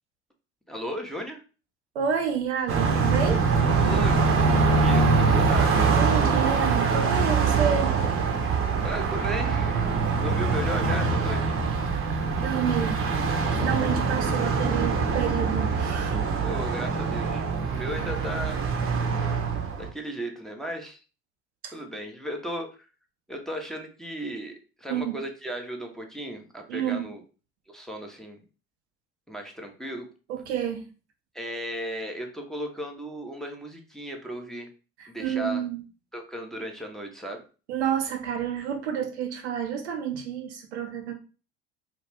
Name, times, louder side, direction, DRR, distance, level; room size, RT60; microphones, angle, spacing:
voice 1, 0.7-1.4 3.8-5.7 8.8-11.5 16.4-18.7 19.8-21.0 21.7-22.7 23.3-27.2 27.7-28.4 29.3-30.1 31.3-34.7 35.1-35.6 36.1-37.4, equal, ahead, 0.6 m, -36 dB
voice 2, 1.9-3.4 5.9-7.9 11.9-12.0 12.4-13.1 13.5-16.2 21.6-21.7 24.9-25.1 26.7-27.0 30.3-30.9 35.0-35.8 37.7-41.1, right 8 dB, 85° right, 0.7 m, -29 dB
Car passing by, 2.7-19.9, right 4 dB, 40° right, 0.7 m, -24 dB
2.9 x 2.4 x 3.3 m
hypercardioid pair, 75°, 33 cm